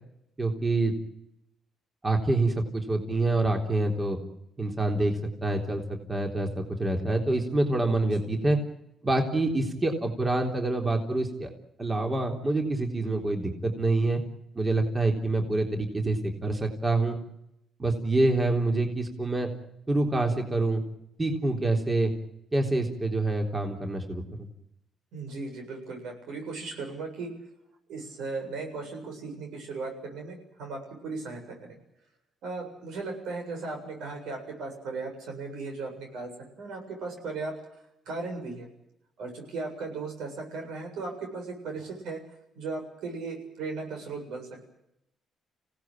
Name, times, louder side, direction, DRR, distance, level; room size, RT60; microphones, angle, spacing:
voice 1, 0.4-0.9 2.0-4.2 4.6-5.8 6.1-8.6 9.0-11.5 11.8-14.2 14.5-17.1 17.8-19.5 19.9-20.8 21.2-22.1 22.5-24.5, right 2 dB, 25° right, 2 dB, 3.6 m, -26 dB
voice 2, 25.1-27.3 27.9-31.8 32.4-36.3 36.6-37.5 38.1-38.7 39.2-42.2 42.6-44.7, right 3 dB, 85° right, 3 dB, 7.6 m, -37 dB
26.0 x 17.5 x 9.1 m, 0.83 s
cardioid pair, 90°, 0 cm